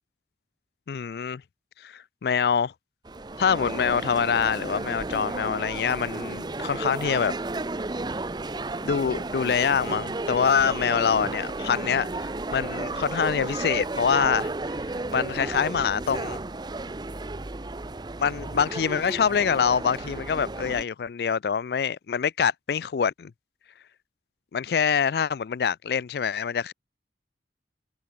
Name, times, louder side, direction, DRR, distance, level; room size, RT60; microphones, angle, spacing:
voice 1, 0.9-1.4 1.8-2.7 3.4-7.3 8.8-14.8 15.1-16.4 18.2-23.3 24.5-26.7, left 7 dB, 60° left, 0.4 m, -25 dB
sound 1, 3.1-20.8, right 2 dB, 25° right, 0.7 m, -33 dB
head